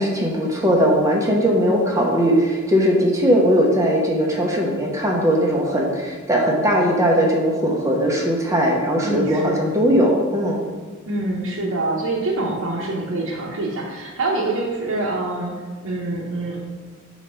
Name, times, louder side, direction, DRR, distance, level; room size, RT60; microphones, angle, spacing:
voice 1, 0.0-10.6, equal, 15° right, -1 dB, 0.8 m, -19 dB
voice 2, 9.0-9.7 11.1-16.7, right 2 dB, 65° right, -4 dB, 0.8 m, -25 dB
5.1 x 4.3 x 5.2 m, 1.4 s
head